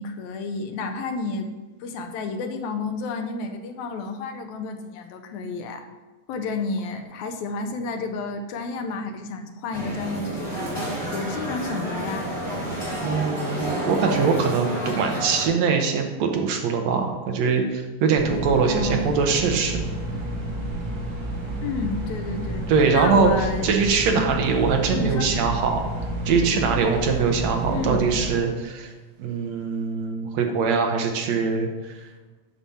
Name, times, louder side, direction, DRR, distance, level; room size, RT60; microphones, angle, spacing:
voice 1, 0.0-1.5 1.8-5.9 6.3-12.3 18.6-19.1 21.6-22.6 22.9-23.7 24.1-24.3 24.9-25.4 27.7-28.1, left 4 dB, 80° left, 6 dB, 2.1 m, -31 dB
sound 1, 9.7-15.5, right 1 dB, 10° left, 2.6 m, -30 dB
voice 2, 13.0-19.8 22.7-25.8 26.3-28.9 29.2-31.7, right 5 dB, 70° right, 3 dB, 2.1 m, -22 dB
sound 2, 18.2-28.4, right 1 dB, 50° right, 1.2 m, -30 dB
9.1 x 6.1 x 4.2 m, 1.2 s
omnidirectional pair, 3.3 m